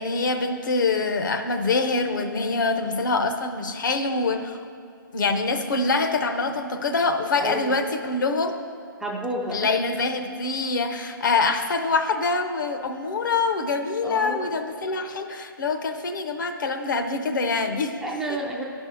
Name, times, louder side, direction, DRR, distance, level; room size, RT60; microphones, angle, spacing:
voice 1, 0.0-4.6 5.1-8.6 9.5-18.0, left 3 dB, 60° left, 7 dB, 0.8 m, -25 dB
voice 2, 7.4-7.8 9.0-9.7 14.0-14.6 18.0-18.6, right 1 dB, 5° right, -3 dB, 0.4 m, -30 dB
10.0 x 5.4 x 6.2 m, 2.3 s
hypercardioid pair, 160°, 11 cm